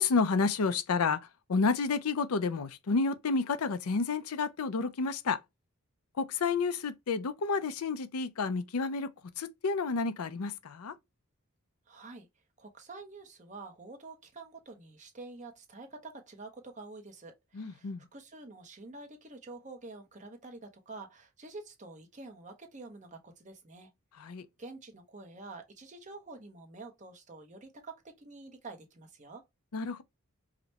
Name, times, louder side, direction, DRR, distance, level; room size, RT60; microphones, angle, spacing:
voice 1, 0.0-5.4 6.2-9.1 9.4-10.9 17.5-18.0 24.2-24.5 29.7-30.0, left 4 dB, 85° left, 0.5 m, -30 dB
voice 2, 11.9-12.3 12.6-23.9 24.6-29.4, right 3 dB, 35° right, 0.9 m, -48 dB
4.9 x 2.2 x 2.8 m
head